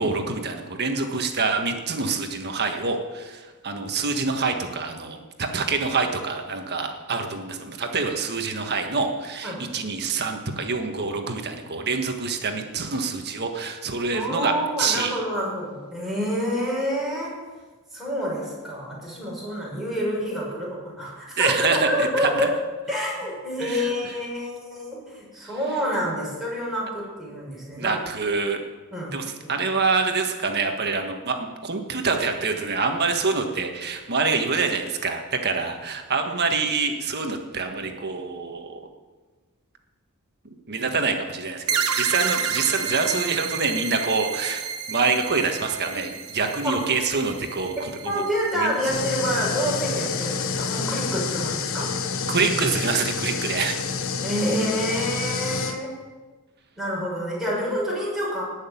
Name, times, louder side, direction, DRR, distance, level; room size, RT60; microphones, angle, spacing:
voice 1, 0.0-14.5 14.8-15.2 21.4-22.5 23.6-23.9 27.8-28.6 29.1-38.8 40.7-48.2 48.5-48.8 52.3-54.0, right 4 dB, 50° right, 4 dB, 1.6 m, -26 dB
voice 2, 14.1-17.4 17.9-22.5 22.9-27.9 28.9-29.5 46.6-46.8 48.0-51.9 54.2-55.9 56.8-58.4, equal, ahead, -5 dB, 6.1 m, -28 dB
sound 1, 41.7-48.9, right 7 dB, 80° right, 1.4 m, -30 dB
sound 2, 48.8-55.8, left 5 dB, 65° left, 1.2 m, -28 dB
19.0 x 6.6 x 9.4 m, 1.3 s
head